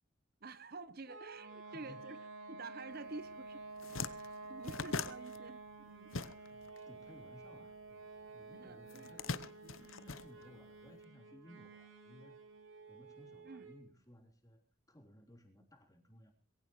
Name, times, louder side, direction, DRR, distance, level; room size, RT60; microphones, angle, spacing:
voice 1, 0.4-2.2 2.5-4.1 4.5-6.1 8.5-9.1 13.4-13.7, right 3 dB, 50° right, 13 dB, 0.9 m, -50 dB
sound 1, 1.1-13.9, right 3 dB, 80° right, 3.1 m, -51 dB
voice 2, 1.6-2.0 4.1-4.5 6.3-12.4 12.9-14.6 14.9-16.3, equal, 15° left, 2 dB, 3.4 m, -60 dB
sound 2, 3.2-3.3 3.6-6.8 7.0-8.2 8.9-10.9, left 4 dB, 85° left, 0.9 m, -42 dB
22.5 x 16.0 x 3.1 m, 0.43 s
head